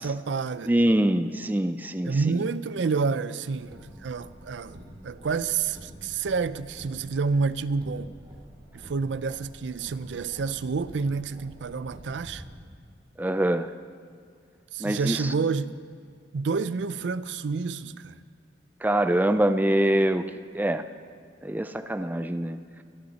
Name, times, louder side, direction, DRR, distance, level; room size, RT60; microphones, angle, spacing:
voice 1, 0.0-0.7 2.1-8.1 8.7-12.4 14.7-15.8 16.3-18.2, right 4 dB, 75° right, 0.5 m, -29 dB
voice 2, 0.7-2.4 13.2-13.7 14.8-15.3 18.8-20.3 20.5-20.8 21.4-22.6, right 1 dB, 10° right, 0.4 m, -24 dB
Car, 3.5-12.5, equal, 25° right, 2.5 m, -47 dB
24.5 x 10.5 x 4.1 m
head